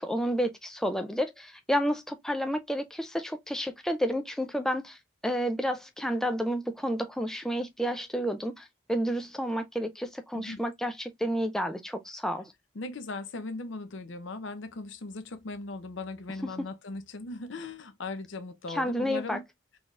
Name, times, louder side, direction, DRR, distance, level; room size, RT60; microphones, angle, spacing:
voice 1, 0.0-5.0 5.2-12.5 18.7-19.4, equal, ahead, 0.3 m, -30 dB
voice 2, 12.7-19.4, left 3 dB, 65° left, 0.7 m, -38 dB
4.0 x 3.4 x 2.3 m
head